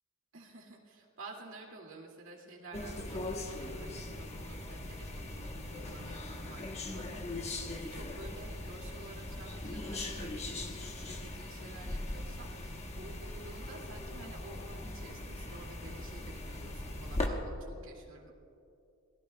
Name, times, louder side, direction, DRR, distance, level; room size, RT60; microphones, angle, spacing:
voice 1, 0.3-18.3, right 2 dB, 60° right, -1 dB, 2.3 m, -51 dB
sound 1, 2.7-17.3, left 2 dB, 30° left, 1.1 m, -40 dB
27.5 x 19.0 x 2.3 m, 2.6 s
head